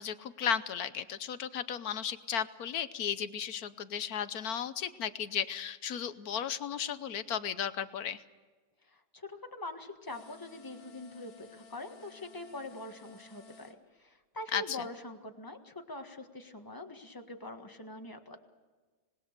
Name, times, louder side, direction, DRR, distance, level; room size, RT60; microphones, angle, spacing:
voice 1, 0.0-8.2 14.5-14.8, left 8 dB, 60° left, 13 dB, 1.2 m, -35 dB
voice 2, 8.8-18.4, left 2 dB, 10° left, 5 dB, 1.5 m, -44 dB
sound 1, 10.1-13.8, left 4 dB, 85° left, 2.4 m, -56 dB
26.5 x 20.0 x 6.7 m, 1.4 s
omnidirectional pair, 2.0 m